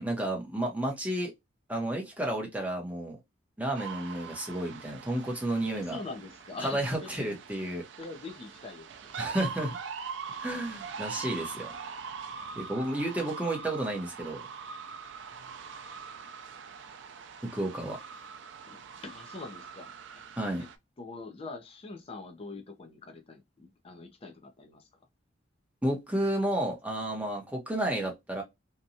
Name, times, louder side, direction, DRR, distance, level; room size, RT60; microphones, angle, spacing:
voice 1, 0.0-1.3 1.7-3.2 3.6-6.0 6.6-7.8 9.2-9.8 10.4-11.7 12.6-14.4 17.4-18.0 20.4-20.6 25.8-28.4, right 1 dB, 10° right, 0.8 m, -31 dB
sound 1, 3.7-20.8, right 6 dB, 65° right, 0.4 m, -43 dB
voice 2, 5.7-7.4 8.0-9.2 9.6-9.7 10.3-10.4 18.7-19.9 20.6-20.7 21.0-24.9, left 3 dB, 30° left, 0.5 m, -44 dB
2.8 x 2.2 x 2.6 m
head